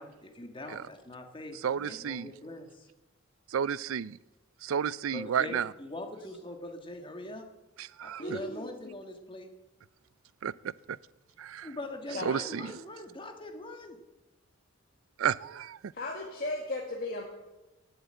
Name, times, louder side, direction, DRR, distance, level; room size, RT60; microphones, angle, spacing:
voice 1, 0.0-2.9 5.1-7.5 8.0-9.5 11.6-14.0, left 1 dB, 25° left, 5 dB, 1.7 m, -42 dB
voice 2, 1.6-2.3 3.5-4.2 4.6-5.7 7.8-8.4 10.4-10.5 10.9-11.0 11.4-11.7 12.2-12.7 15.2-15.9, right 7 dB, 80° right, 20 dB, 0.4 m, -32 dB
voice 3, 8.2-8.9 12.1-12.3 15.9-17.2, left 2 dB, 45° left, 0 dB, 1.8 m, -36 dB
18.0 x 8.1 x 7.8 m, 1.1 s
head